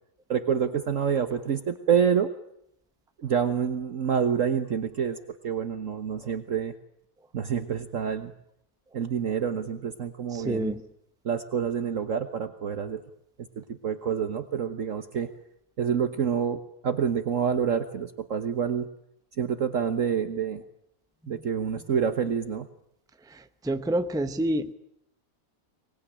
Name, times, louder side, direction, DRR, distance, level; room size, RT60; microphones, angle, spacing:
voice 1, 0.3-2.3 3.2-5.2 5.4-6.7 7.3-8.3 8.9-10.8 11.2-13.0 13.6-15.3 15.8-18.9 19.4-20.6 21.3-22.7, right 7 dB, 60° right, 9 dB, 1.5 m, -27 dB
voice 2, 10.3-10.8 21.3-21.4 23.6-24.7, right 1 dB, 5° right, 10 dB, 0.9 m, -27 dB
25.0 x 20.0 x 10.0 m, 0.77 s
omnidirectional pair, 1.6 m